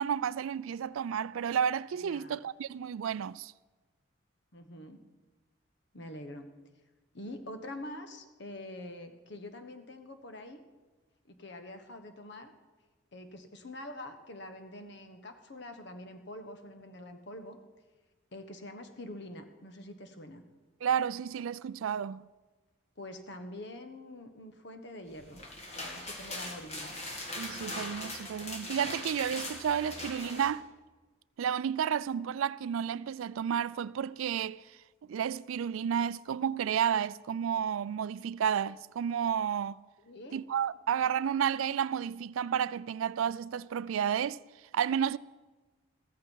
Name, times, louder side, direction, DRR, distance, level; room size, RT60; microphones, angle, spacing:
voice 1, 0.0-3.5 20.8-22.2 27.4-30.7 31.4-34.6 35.1-39.8 40.3-44.4 44.7-45.2, right 8 dB, 80° right, 0.3 m, -31 dB
voice 2, 2.0-2.4 4.5-5.0 5.9-6.5 7.1-10.6 11.3-12.5 13.1-17.6 18.3-20.4 23.0-25.4 25.9-27.0 40.0-40.4, left 1 dB, 55° left, 1.2 m, -45 dB
sound 1, 25.2-30.5, left 2 dB, 30° left, 2.0 m, -40 dB
15.0 x 14.0 x 4.6 m
head